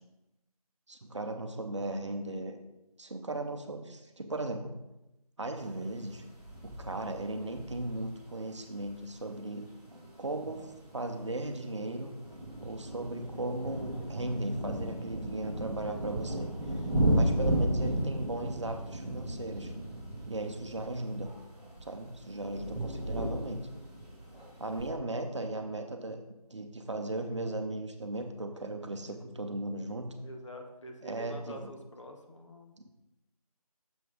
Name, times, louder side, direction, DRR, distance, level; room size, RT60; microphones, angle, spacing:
voice 1, 0.9-2.6 3.0-4.8 5.4-6.2 6.6-9.7 10.2-12.1 12.6-16.8 17.1-19.7 20.3-21.3 21.8-23.6 24.6-26.2 26.5-30.1 31.0-31.6, right 2 dB, 50° right, 5 dB, 0.7 m, -37 dB
sound 1, 5.6-24.9, right 1 dB, 10° left, 1.2 m, -35 dB
voice 2, 30.2-32.9, equal, 50° left, 3 dB, 1.1 m, -47 dB
6.8 x 4.5 x 5.0 m, 0.94 s
figure-of-eight pair, 170°, 20 cm